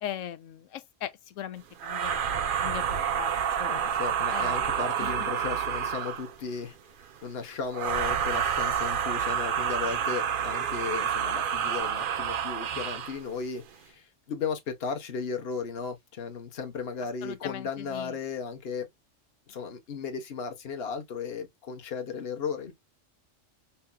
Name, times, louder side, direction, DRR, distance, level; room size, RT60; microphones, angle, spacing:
voice 1, 0.0-3.3 3.6-3.7 4.3-4.6 5.0-5.3 17.2-18.1, left 10 dB, 80° left, 1.0 m, -39 dB
sound 1, 1.8-6.4 7.7-13.2, right 8 dB, 55° right, 0.7 m, -29 dB
voice 2, 3.6-6.7 7.2-18.9 19.5-22.7, left 5 dB, 50° left, 1.3 m, -35 dB
5.6 x 2.7 x 2.3 m
omnidirectional pair, 1.3 m